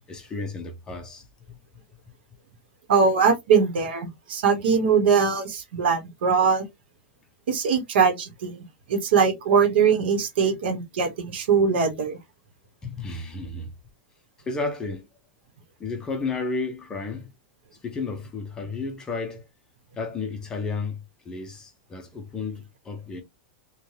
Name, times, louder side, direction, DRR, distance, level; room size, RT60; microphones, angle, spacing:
voice 1, 0.0-1.6 12.8-13.7 14.5-15.1 15.8-17.3 17.8-19.4 20.0-23.2, left 4 dB, 10° left, 0.4 m, -32 dB
voice 2, 2.9-6.6 7.5-8.6 8.9-12.2, right 6 dB, 75° right, 1.0 m, -21 dB
3.2 x 2.2 x 2.7 m
supercardioid pair, 175°, 6 cm